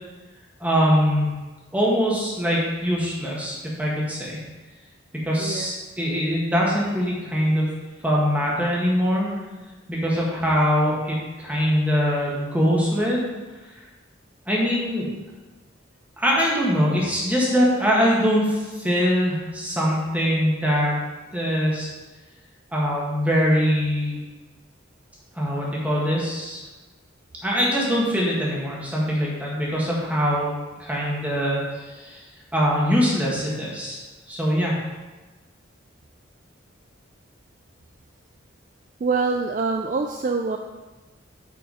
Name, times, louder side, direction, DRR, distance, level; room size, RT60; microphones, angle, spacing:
voice 1, 0.6-1.3 1.7-4.4 5.3-7.7 8.0-9.3 9.9-13.3 14.5-15.1 16.2-21.0 21.3-21.9 22.7-24.2 25.3-26.6 27.4-30.5 30.8-32.2 32.5-34.0 34.3-34.8, equal, 5° right, -5 dB, 1.6 m, -22 dB
voice 2, 5.4-5.7 39.0-40.6, right 4 dB, 40° right, 4 dB, 0.3 m, -25 dB
8.3 x 4.6 x 4.9 m, 1.2 s
head